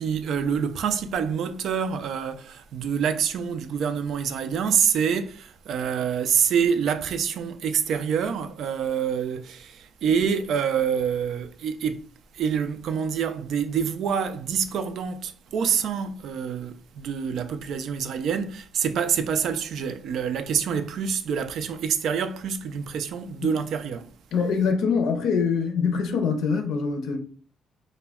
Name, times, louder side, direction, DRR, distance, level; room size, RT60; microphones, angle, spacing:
voice 1, 0.0-12.1 12.3-24.1, right 7 dB, 70° right, 0.3 m, -26 dB
voice 2, 24.3-27.2, left 5 dB, 80° left, 0.5 m, -24 dB
2.1 x 2.1 x 3.4 m
cardioid pair, 90°, 0 cm